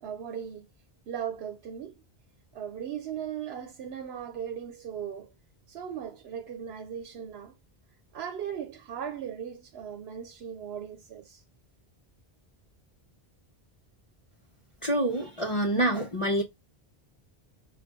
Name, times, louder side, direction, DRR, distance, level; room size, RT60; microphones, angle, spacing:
voice 1, 0.0-0.7 1.1-2.0 2.5-5.3 5.7-7.5 8.1-11.4, right 8 dB, 85° right, 0.9 m, -38 dB
voice 2, 14.8-16.4, right 1 dB, 35° left, 0.8 m, -26 dB
5.2 x 2.5 x 3.5 m
omnidirectional pair, 1.0 m